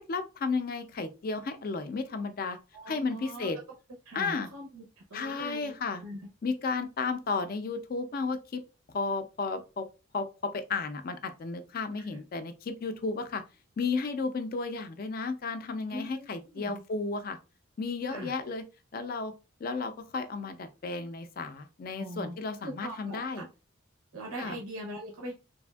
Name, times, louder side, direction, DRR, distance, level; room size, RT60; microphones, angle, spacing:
voice 1, 0.0-2.6 2.9-3.6 4.1-4.5 5.1-6.0 6.4-8.6 8.9-9.9 10.1-13.4 13.8-17.4 17.8-18.7 18.9-19.3 19.6-23.5 24.4-24.6, left 4 dB, 45° left, 0.3 m, -33 dB
voice 2, 2.7-3.5 4.1-6.2 12.0-12.2 15.9-16.8 18.1-18.3 22.0-22.3 22.6-23.5 24.1-25.3, right 1 dB, 90° right, 0.7 m, -41 dB
3.3 x 2.5 x 2.2 m
head